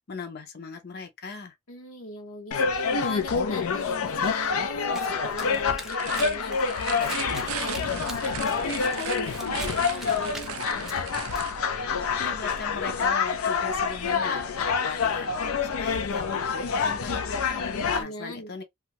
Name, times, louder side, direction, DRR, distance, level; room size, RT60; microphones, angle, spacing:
voice 1, 0.1-1.6 12.2-18.6, left 4 dB, 50° left, 0.7 m, -38 dB
voice 2, 1.7-10.9 18.0-18.5, left 3 dB, 70° left, 1.0 m, -40 dB
sound 1, 2.5-18.0, left 5 dB, 85° left, 0.5 m, -27 dB
Domestic sounds home sounds, 4.9-11.4, right 1 dB, ahead, 0.5 m, -45 dB
sound 2, 5.9-11.6, right 11 dB, 75° right, 0.3 m, -38 dB
2.7 x 2.4 x 2.9 m
head